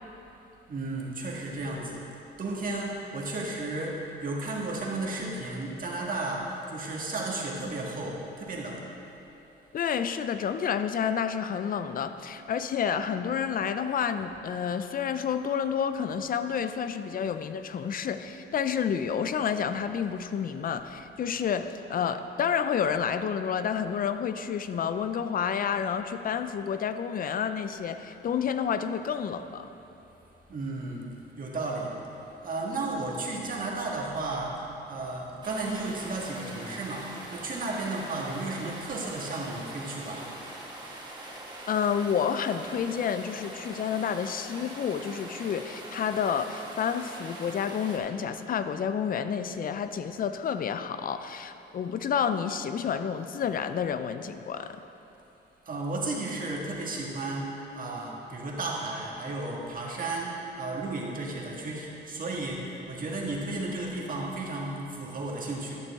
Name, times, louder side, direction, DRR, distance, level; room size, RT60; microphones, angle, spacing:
voice 1, 0.7-2.0 2.4-6.4 6.7-8.8 30.5-31.0 31.4-31.9 32.4-34.5 34.9-37.1 37.3-40.4 55.7-62.6 62.9-65.8, right 2 dB, 45° right, -2 dB, 1.6 m, -33 dB
voice 2, 9.7-29.7 41.7-54.8, left 7 dB, 45° left, 10 dB, 0.5 m, -29 dB
sound 1, 35.4-48.0, right 1 dB, 20° right, 1.4 m, -43 dB
11.5 x 6.7 x 3.6 m, 2.9 s
cardioid pair, 90°, 20 cm